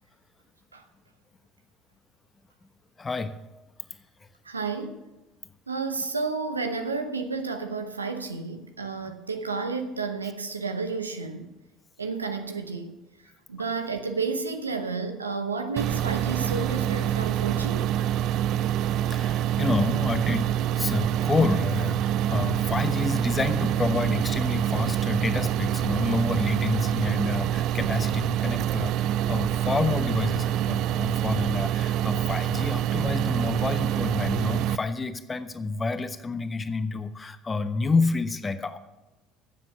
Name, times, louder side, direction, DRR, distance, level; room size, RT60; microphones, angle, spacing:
voice 1, 3.0-3.4 19.1-38.8, left 3 dB, 25° left, 1.1 m, -29 dB
voice 2, 4.4-5.0 5.7-11.5 12.0-13.0 13.5-17.9, right 4 dB, 90° right, 0.8 m, -31 dB
sound 1, 15.8-34.8, right 11 dB, 55° right, 0.4 m, -26 dB
14.0 x 7.5 x 5.7 m
figure-of-eight pair, 60°, 0 cm